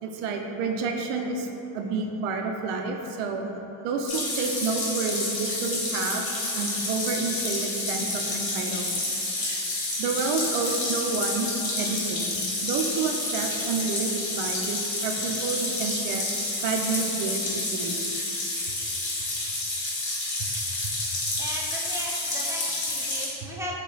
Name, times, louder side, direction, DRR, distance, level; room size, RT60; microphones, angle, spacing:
voice 1, 0.0-1.5 1.7-3.5 3.8-6.3 6.5-9.0 10.0-11.5 11.8-16.3 16.6-18.0, right 4 dB, 80° right, 3 dB, 0.6 m, -29 dB
sound 1, 4.1-23.3, left 2 dB, 45° left, 1.2 m, -29 dB
voice 2, 20.4-20.8 21.4-23.8, equal, 5° right, -4 dB, 0.3 m, -37 dB
4.8 x 2.3 x 4.0 m, 3.0 s
cardioid pair, 130°, 49 cm